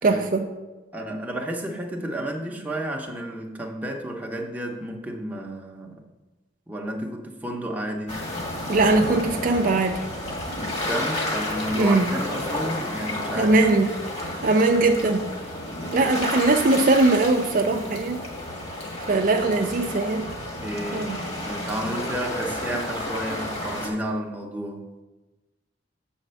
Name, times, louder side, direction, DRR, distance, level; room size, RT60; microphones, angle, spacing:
voice 1, 0.0-0.5 8.7-10.0 11.7-12.1 13.3-13.9 14.4-15.3 15.9-18.2 19.1-20.3 20.9-21.2, right 3 dB, 50° right, 4 dB, 0.5 m, -20 dB
voice 2, 0.9-6.0 6.7-8.2 10.6-13.6 16.0-16.1 20.6-24.9, right 1 dB, 10° right, 0 dB, 0.8 m, -32 dB
sound 1, 8.1-23.9, left 1 dB, 35° left, 1.5 m, -31 dB
7.2 x 4.2 x 6.7 m, 1.2 s
head